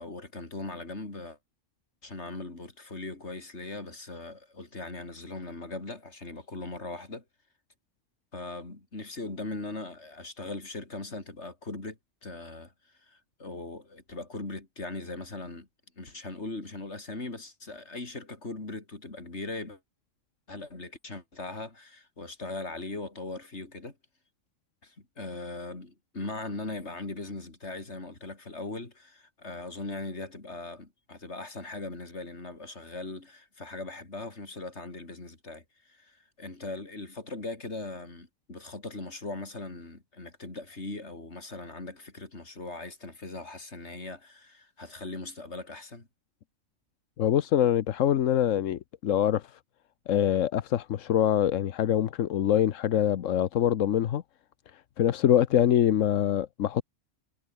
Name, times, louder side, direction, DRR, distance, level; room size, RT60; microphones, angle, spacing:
voice 1, 0.0-1.4 2.0-7.2 8.3-12.7 13.0-15.7 16.0-19.8 20.5-24.0 24.8-46.1, left 2 dB, 65° left, 4.0 m, -39 dB
voice 2, 47.2-49.4 50.1-54.2 54.7-56.8, left 10 dB, 90° left, 1.2 m, -24 dB
omnidirectional pair, 1.3 m